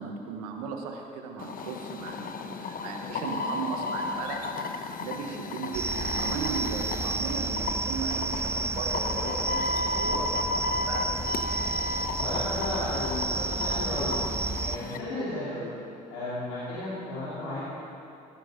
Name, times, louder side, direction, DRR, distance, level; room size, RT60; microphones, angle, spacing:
voice 1, 0.0-4.5 5.0-11.3, right 6 dB, 90° right, 3 dB, 1.3 m, -37 dB
sound 1, 1.4-15.0, left 3 dB, 50° left, 1.0 m, -34 dB
sound 2, 5.7-14.8, right 3 dB, 15° right, 0.4 m, -31 dB
voice 2, 12.2-15.7 16.1-17.6, left 1 dB, 90° left, -11 dB, 3.4 m, -34 dB
15.0 x 13.0 x 3.9 m, 2.7 s
supercardioid pair, 70°, 19 cm